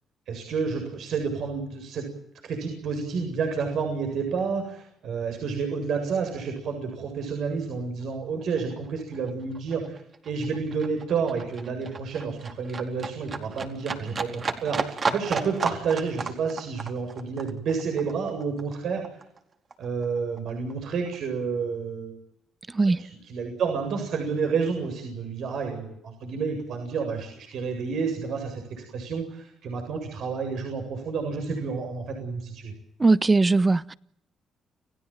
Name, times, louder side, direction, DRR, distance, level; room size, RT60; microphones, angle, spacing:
voice 1, 0.3-2.1 2.4-19.0 19.8-22.2 23.0-32.7, right 5 dB, 75° right, 7.8 m, -30 dB
Livestock farm animals working animals, 8.0-8.1 8.4-19.4 19.7-20.7 21.0-21.1, right 4 dB, 45° right, 4.4 m, -34 dB
voice 2, 33.0-33.9, right 3 dB, 25° right, 1.1 m, -20 dB
30.0 x 17.0 x 9.3 m
cardioid pair, 75°, 0 cm